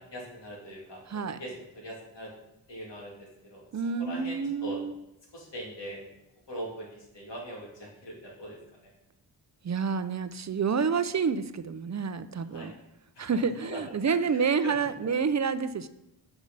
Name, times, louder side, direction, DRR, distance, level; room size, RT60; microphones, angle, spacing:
voice 1, 0.1-2.3 2.7-3.6 4.0-4.8 5.3-6.0 6.5-8.6 12.5-12.7 13.1-13.8 14.3-14.7, equal, 70° left, -4 dB, 3.0 m, -41 dB
voice 2, 1.1-1.4 3.7-4.9 9.6-12.7 13.2-15.9, right 5 dB, 40° right, 13 dB, 0.6 m, -28 dB
7.7 x 4.9 x 5.5 m, 0.86 s
cardioid pair, 55°, 45 cm